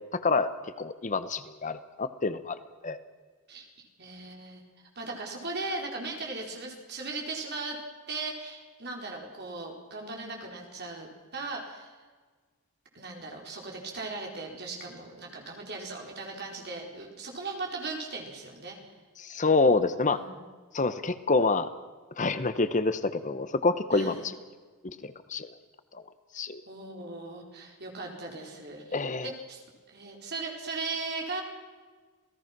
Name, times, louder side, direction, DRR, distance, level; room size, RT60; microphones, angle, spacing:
voice 1, 0.1-0.5 0.8-2.5 2.8-3.0 19.2-20.2 20.7-21.7 22.2-24.1 25.0-25.5 26.3-26.6 28.9-29.3, left 3 dB, 35° left, 12 dB, 0.9 m, -27 dB
voice 2, 3.5-4.6 4.9-7.8 8.1-11.1 11.3-12.0 12.9-18.9 20.1-20.4 23.9-24.3 26.7-29.6 29.9-31.4, right 3 dB, 50° right, 0 dB, 4.6 m, -38 dB
27.5 x 18.0 x 6.1 m, 1.4 s
head